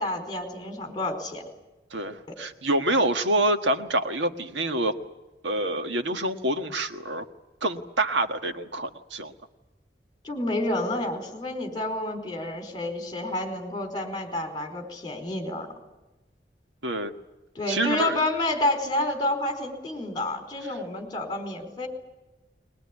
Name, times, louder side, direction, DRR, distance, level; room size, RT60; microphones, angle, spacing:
voice 1, 0.0-1.4 2.3-2.4 10.2-15.7 17.5-21.9, left 1 dB, 25° left, 4 dB, 4.5 m, -29 dB
voice 2, 1.9-4.9 5.4-7.2 7.6-9.3 16.8-17.1 17.7-18.2, right 1 dB, 85° right, 8 dB, 1.5 m, -26 dB
21.5 x 21.5 x 9.8 m, 1.0 s
head